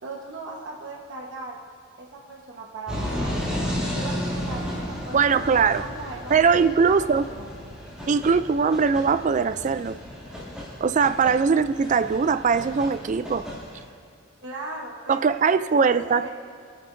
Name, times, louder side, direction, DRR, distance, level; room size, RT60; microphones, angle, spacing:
voice 1, 0.0-1.6 2.0-3.5 3.9-7.8 14.4-15.4 15.7-16.3, right 2 dB, 60° right, -2 dB, 1.2 m, -38 dB
sound 1, 2.9-13.8, equal, 5° right, 2.6 m, -33 dB
voice 2, 5.1-5.8 6.3-7.2 8.1-10.0 10.8-13.4 15.1-16.3, right 5 dB, 35° right, 13 dB, 0.3 m, -21 dB
28.0 x 9.9 x 2.6 m, 2.3 s
head